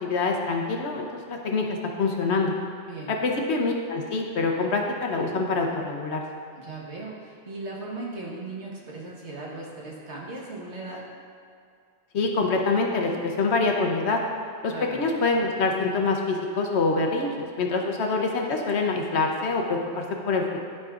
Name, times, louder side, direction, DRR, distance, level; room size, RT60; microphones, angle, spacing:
voice 1, 0.0-2.5 3.1-6.2 12.1-14.2 14.6-20.6, left 3 dB, 65° left, 1 dB, 1.0 m, -25 dB
voice 2, 6.5-11.0 14.7-15.0, right 2 dB, 65° right, -3 dB, 1.5 m, -37 dB
12.0 x 5.3 x 2.5 m, 2.3 s
omnidirectional pair, 1.3 m